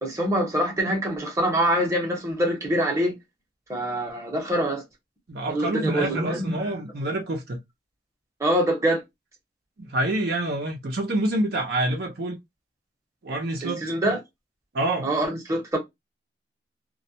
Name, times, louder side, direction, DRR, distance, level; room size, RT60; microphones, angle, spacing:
voice 1, 0.0-3.1 3.7-4.8 5.5-6.6 8.4-9.0 13.6-14.2 15.0-15.8, right 1 dB, 15° right, 0.8 m, -24 dB
voice 2, 5.3-7.6 9.8-12.4 13.2-13.8 14.7-15.1, right 1 dB, 55° right, 0.6 m, -27 dB
2.3 x 2.1 x 2.7 m
head